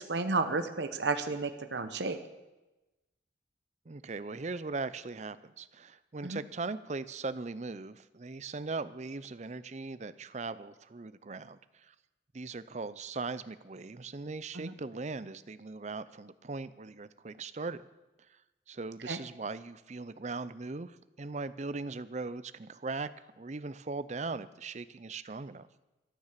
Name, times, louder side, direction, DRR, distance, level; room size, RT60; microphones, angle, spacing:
voice 1, 0.0-2.2 6.2-6.4 14.5-14.7 19.1-19.2, right 3 dB, 65° right, 8 dB, 0.9 m, -32 dB
voice 2, 3.9-11.9 12.3-17.8 18.7-23.1 23.4-25.7, right 3 dB, 40° right, 15 dB, 0.5 m, -39 dB
13.5 x 9.7 x 7.4 m, 1.1 s
head